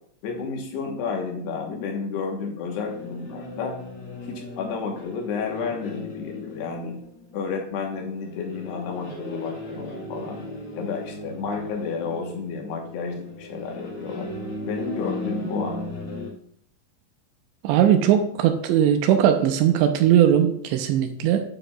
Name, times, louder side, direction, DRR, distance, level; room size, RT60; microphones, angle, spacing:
voice 1, 0.2-3.8 4.2-7.0 7.3-10.4 10.7-14.3 14.6-15.9, left 5 dB, 70° left, 1 dB, 3.2 m, -31 dB
sound 1, 2.8-16.3, left 2 dB, 55° left, 1.3 m, -36 dB
voice 2, 17.6-21.4, right 10 dB, 85° right, 7 dB, 2.9 m, -19 dB
10.0 x 9.2 x 2.4 m, 0.68 s
omnidirectional pair, 5.3 m